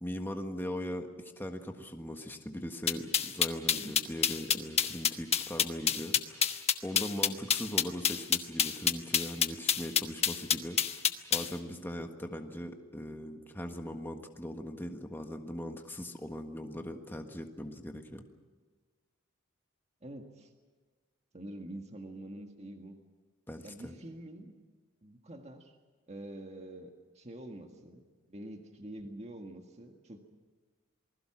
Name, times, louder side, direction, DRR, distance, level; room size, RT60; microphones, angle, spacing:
voice 1, 0.0-6.5 6.8-11.0 11.3-18.2 23.5-23.9, equal, 10° left, 4 dB, 1.5 m, -40 dB
sound 1, 2.9-11.5, left 8 dB, 30° left, 1.1 m, -27 dB
voice 2, 20.0-20.5 21.3-23.0 23.6-24.6 25.0-25.8 26.1-28.0 28.3-30.2, right 1 dB, 35° right, 4 dB, 1.8 m, -46 dB
28.0 x 20.5 x 6.1 m, 1.4 s
head